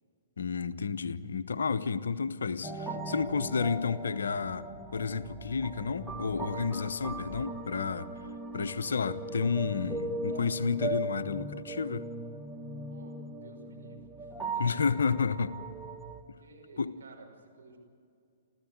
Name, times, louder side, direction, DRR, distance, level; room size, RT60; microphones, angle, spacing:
voice 1, 0.4-8.1 8.5-12.1 14.6-15.6 16.8-16.9, left 5 dB, 70° left, 0.9 m, -31 dB
sound 1, 2.6-16.2, right 2 dB, 5° right, 1.5 m, -39 dB
voice 2, 12.9-14.8 16.4-17.8, right 3 dB, 70° right, 5.5 m, -53 dB
29.0 x 14.0 x 8.1 m
figure-of-eight pair, 115°, 0 cm